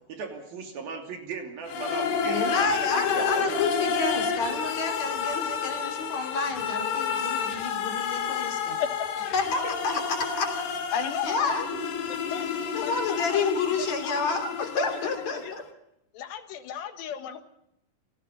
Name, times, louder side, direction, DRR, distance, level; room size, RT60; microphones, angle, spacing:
voice 1, 0.1-3.6 9.6-10.0 11.7-11.9, right 4 dB, 60° right, 4 dB, 4.6 m, -38 dB
sound 1, 1.7-15.5, left 6 dB, 60° left, 3.2 m, -30 dB
voice 2, 2.2-8.8 9.3-10.5 11.2-11.6 12.7-15.6, left 4 dB, 45° left, 5 dB, 4.0 m, -29 dB
voice 3, 10.9-11.6 12.3-12.5 12.8-13.5 13.8-14.4 14.8-15.0 15.3-15.5 16.1-17.4, left 9 dB, 80° left, 8 dB, 3.5 m, -34 dB
28.5 x 17.0 x 5.6 m, 0.80 s
omnidirectional pair, 5.0 m